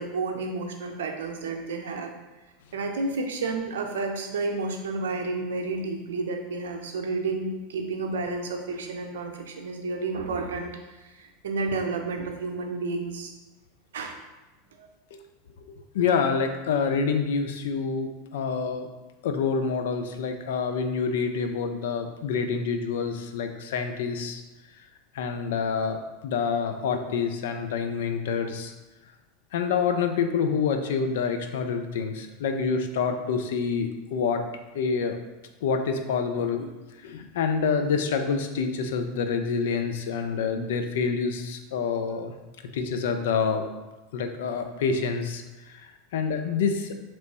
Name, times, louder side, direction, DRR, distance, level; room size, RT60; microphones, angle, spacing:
voice 1, 0.0-2.1 2.7-13.3 13.9-14.2, right 3 dB, 75° right, 2 dB, 0.6 m, -31 dB
voice 2, 15.9-18.9 19.2-24.4 25.1-28.7 29.5-34.4 34.7-35.2 35.6-36.7 37.0-42.3 42.7-43.7 44.1-46.9, left 5 dB, 70° left, 6 dB, 0.4 m, -27 dB
3.1 x 3.0 x 4.2 m, 1.1 s
hypercardioid pair, 90°, 0 cm